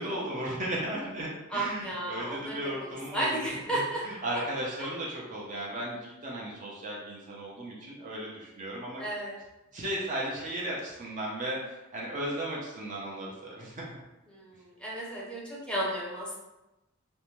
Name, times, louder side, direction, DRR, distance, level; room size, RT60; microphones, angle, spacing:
voice 1, 0.0-9.0 9.7-13.9, right 1 dB, 40° right, -4 dB, 0.5 m, -36 dB
voice 2, 1.5-4.0 4.3-4.4 4.8-4.9 9.0-9.3 14.3-16.3, right 1 dB, 5° left, -6 dB, 0.6 m, -33 dB
2.6 x 2.1 x 3.0 m, 0.99 s
head